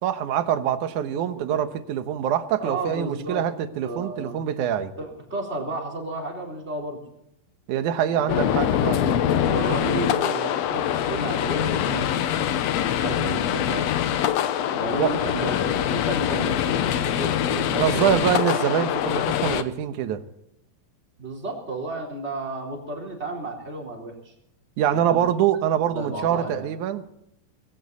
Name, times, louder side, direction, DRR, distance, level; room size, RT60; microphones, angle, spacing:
voice 1, 0.0-4.9 7.7-9.0 14.9-15.1 17.7-20.2 24.8-27.0, right 10 dB, 70° right, 10 dB, 2.4 m, -24 dB
voice 2, 1.0-1.6 2.6-3.4 3.8-4.5 5.0-7.0 8.1-12.5 13.0-13.9 14.7-18.4 21.2-24.3 24.9-25.2 25.8-26.7, right 2 dB, 20° right, 0 dB, 3.9 m, -33 dB
sound 1, 8.3-19.6, left 10 dB, 75° left, 1.6 m, -24 dB
20.5 x 17.0 x 4.1 m, 0.79 s
omnidirectional pair, 4.0 m